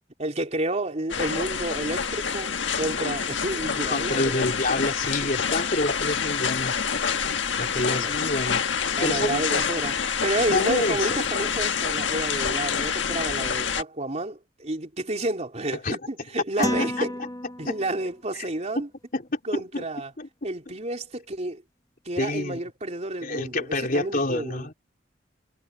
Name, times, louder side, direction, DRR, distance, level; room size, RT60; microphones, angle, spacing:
voice 1, 0.2-4.5 7.9-8.1 9.0-17.1 17.6-18.9 19.4-20.1 20.4-21.6 22.1-24.7, right 1 dB, 40° right, 3.8 m, -30 dB
sound 1, 1.1-13.8, left 6 dB, 85° left, 1.5 m, -27 dB
voice 2, 3.9-6.7 7.6-9.5 10.5-11.2 15.7-16.0 16.6-17.1 17.7-17.8 18.3-18.5 19.1-19.8 20.2-20.3 22.2-22.6 23.2-24.7, left 2 dB, 50° left, 3.7 m, -28 dB
sound 2, 16.6-18.1, left 1 dB, 20° left, 0.9 m, -30 dB
head